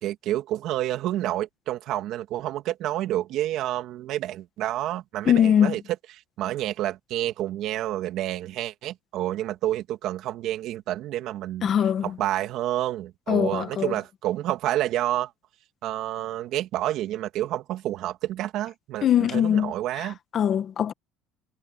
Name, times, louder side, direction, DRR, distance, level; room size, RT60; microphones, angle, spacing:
voice 1, 0.0-5.8 6.4-11.7 12.0-15.3 15.8-20.2, right 13 dB, 55° right, 2.7 m, -29 dB
voice 2, 5.3-5.7 11.6-12.1 13.3-13.9 19.0-19.7 20.3-20.9, left 9 dB, 35° left, 1.3 m, -21 dB
cardioid pair, 145°, 0 cm